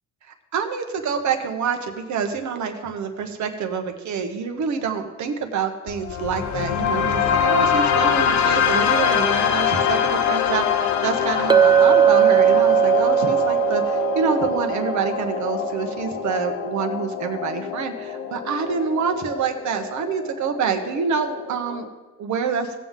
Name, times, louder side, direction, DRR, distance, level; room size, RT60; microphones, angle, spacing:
voice 1, 0.2-21.9 22.2-22.7, right 6 dB, 70° right, 5 dB, 1.4 m, -27 dB
sound 1, 5.9-21.9, left 8 dB, 70° left, 1.0 m, -24 dB
Chink clink, 11.5-15.7, right 9 dB, 15° right, 0.3 m, -19 dB
17.5 x 7.5 x 3.8 m, 1.3 s
cardioid pair, 90°, 30 cm